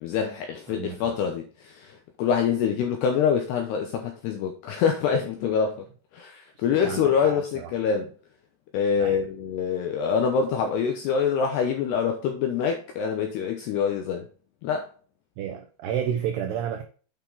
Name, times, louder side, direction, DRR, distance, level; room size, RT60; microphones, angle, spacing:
voice 1, 0.0-5.8 6.1-8.1 8.7-14.3 14.6-14.9, left 7 dB, 85° left, 2.4 m, -25 dB
voice 2, 0.7-1.1 6.8-7.7 9.0-9.3 15.4-16.8, right 9 dB, 80° right, 2.4 m, -31 dB
8.9 x 5.7 x 3.8 m
omnidirectional pair, 5.9 m